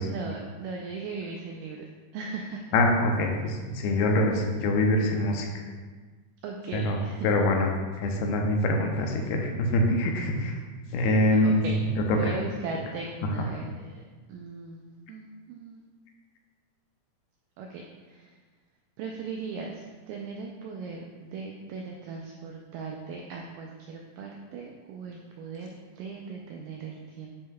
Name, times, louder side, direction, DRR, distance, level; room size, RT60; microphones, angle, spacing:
voice 1, 0.0-1.9 2.1-2.8 6.4-7.3 11.4-11.8 12.2-15.9 17.6-18.4 19.0-27.3, right 4 dB, 90° right, 0 dB, 1.9 m, -38 dB
voice 2, 2.7-5.6 6.7-7.0 7.2-7.7 8.0-10.6 10.9-11.6 12.2-12.3, left 1 dB, 85° left, 2 dB, 2.7 m, -24 dB
9.9 x 5.4 x 2.3 m, 1.4 s
omnidirectional pair, 4.5 m